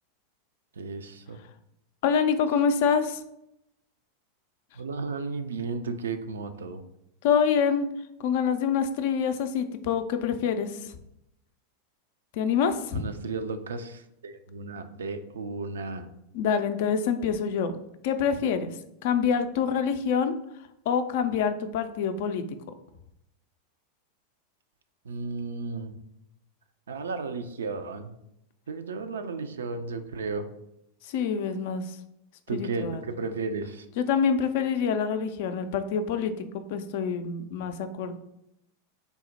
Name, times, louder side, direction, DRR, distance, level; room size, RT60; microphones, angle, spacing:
voice 1, 0.8-1.4 4.8-6.8 12.9-16.1 25.1-25.9 26.9-28.1 28.7-30.5 32.5-33.8, right 4 dB, 70° right, 8 dB, 0.3 m, -34 dB
voice 2, 2.0-3.2 7.2-7.9 8.2-10.7 12.3-13.0 16.3-17.7 18.0-18.7 19.0-20.3 20.9-22.4 31.1-32.0 32.5-33.1 34.0-36.3 36.7-38.2, left 6 dB, 55° left, 9 dB, 0.3 m, -26 dB
3.4 x 2.0 x 4.0 m, 0.81 s
figure-of-eight pair, 85°, 0 cm